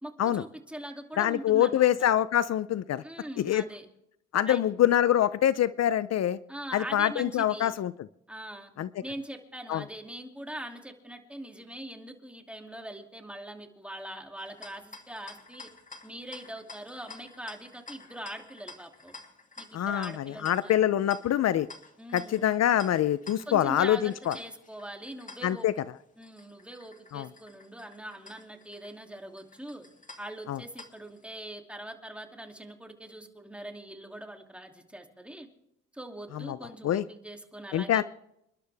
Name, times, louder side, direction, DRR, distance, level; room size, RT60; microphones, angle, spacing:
voice 1, 0.0-2.1 3.0-3.8 4.4-4.6 6.5-7.7 8.3-8.7 9.0-15.7 16.0-19.1 19.6-20.8 22.0-22.5 23.5-25.7 26.2-29.8 30.2-35.5 35.9-38.0, right 1 dB, 5° right, 3 dB, 2.7 m, -42 dB
voice 2, 1.2-3.0 3.4-3.6 4.3-6.4 6.7-7.9 8.8-8.9 9.7-9.8 19.7-21.7 22.1-24.3 25.4-25.7 27.1-27.3 30.5-30.6 36.3-36.6 36.8-37.0 37.7-38.0, left 11 dB, 60° left, 15 dB, 0.6 m, -25 dB
sound 1, 14.4-31.3, left 3 dB, 25° left, 2.4 m, -50 dB
28.5 x 11.5 x 3.5 m, 0.79 s
cardioid pair, 90°, 30 cm